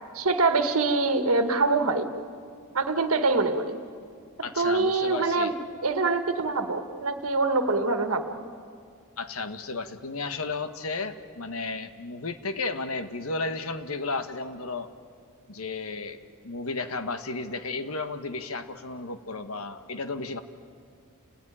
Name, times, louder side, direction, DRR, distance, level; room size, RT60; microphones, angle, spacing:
voice 1, 0.0-2.1 2.7-3.8 4.6-5.5 5.8-8.4, right 3 dB, 75° right, 8 dB, 1.7 m, -24 dB
voice 2, 4.4-5.5 9.2-14.9 15.5-16.2 16.4-20.4, left 3 dB, 70° left, 9 dB, 1.4 m, -33 dB
30.0 x 18.5 x 10.0 m, 2.3 s
head